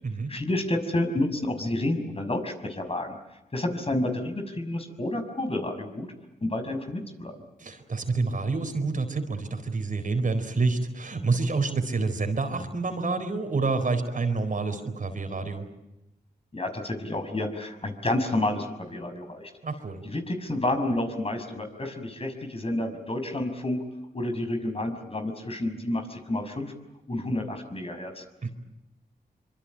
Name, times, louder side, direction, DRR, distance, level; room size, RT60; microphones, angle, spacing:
voice 1, 0.3-3.2 3.5-6.1 6.4-7.3 16.5-19.5 20.0-23.8 24.1-26.7 27.1-28.2, left 1 dB, 35° left, 6 dB, 5.8 m, -30 dB
voice 2, 7.6-15.7 19.6-20.0 28.4-28.5, right 3 dB, 50° right, 7 dB, 4.3 m, -28 dB
25.0 x 24.0 x 8.7 m, 0.95 s
cardioid pair, 55°, 17 cm